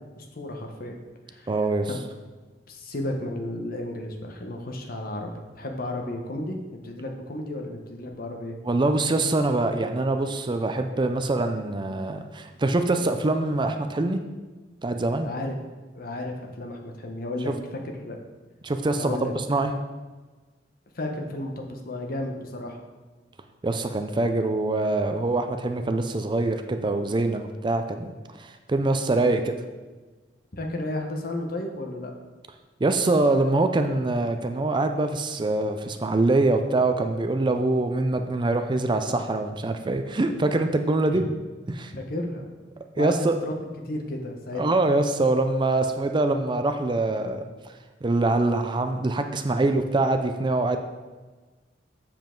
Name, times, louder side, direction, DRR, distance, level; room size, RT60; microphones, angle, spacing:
voice 1, 0.2-0.9 1.3-1.5 1.9-2.0 2.7-8.6 15.2-15.6 15.9-18.2 19.0-19.3 20.9-22.8 30.5-32.1 41.1-41.3 41.9-42.4 43.0-43.6 43.8-44.6, left 1 dB, 55° left, 3 dB, 1.0 m, -33 dB
voice 2, 1.5-1.9 8.6-14.2 14.8-15.3 17.5-17.6 18.6-19.7 23.6-28.1 28.4-29.5 32.8-41.2 41.7-41.9 43.0-43.4 44.5-47.4 48.0-50.8, right 2 dB, 25° right, 7 dB, 0.4 m, -24 dB
7.4 x 7.0 x 3.8 m, 1.3 s
head